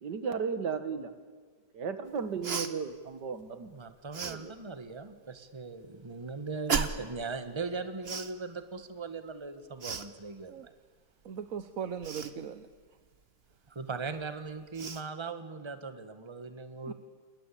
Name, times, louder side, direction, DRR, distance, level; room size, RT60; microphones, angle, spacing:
voice 1, 0.0-1.1 1.7-3.7 4.2-4.5, right 6 dB, 75° right, 11 dB, 2.2 m, -35 dB
Cough, 2.4-2.7 4.1-4.4 6.7-7.1 8.0-8.3 9.8-10.1 12.0-12.3 14.2-14.3 14.7-15.0, right 5 dB, 40° right, 1.3 m, -33 dB
voice 2, 3.7-10.7 13.7-16.9, right 4 dB, 15° right, 10 dB, 1.4 m, -39 dB
voice 3, 11.2-12.7 16.8-16.9, right 7 dB, 55° right, 11 dB, 1.3 m, -38 dB
29.0 x 21.0 x 8.6 m, 1.5 s
omnidirectional pair, 1.9 m